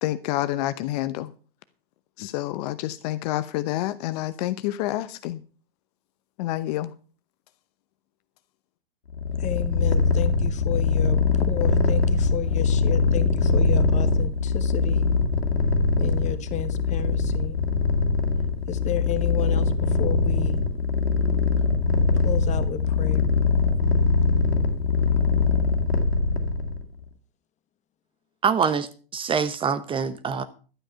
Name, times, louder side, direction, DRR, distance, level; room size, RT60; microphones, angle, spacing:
voice 1, 0.0-1.3 2.2-5.4 6.4-6.9, left 15 dB, 40° left, 0.8 m, -28 dB
Purr, 9.1-26.8, left 4 dB, 80° left, 2.1 m, -22 dB
voice 2, 9.4-15.1 16.0-17.6 18.7-20.6 22.2-23.3, left 10 dB, 25° left, 1.3 m, -33 dB
voice 3, 28.4-28.9 29.1-30.4, right 6 dB, 15° right, 0.9 m, -24 dB
12.5 x 8.8 x 5.6 m
figure-of-eight pair, 105°, 30 cm